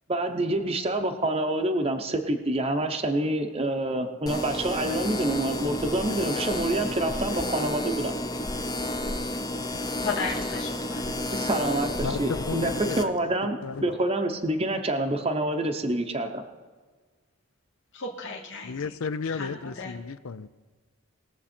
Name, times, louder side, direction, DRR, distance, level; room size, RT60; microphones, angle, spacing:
voice 1, 0.1-8.1 11.3-16.4, right 1 dB, 25° right, 3 dB, 0.7 m, -27 dB
sound 1, 4.3-13.0, left 1 dB, 15° left, 0.6 m, -31 dB
voice 2, 10.0-11.2 17.9-18.7 19.3-19.5 19.8-19.9, left 4 dB, 55° left, -1 dB, 1.1 m, -34 dB
voice 3, 12.0-13.1 13.4-13.9 18.6-20.5, left 5 dB, 75° left, 15 dB, 0.5 m, -33 dB
20.0 x 7.3 x 4.3 m, 1.4 s
head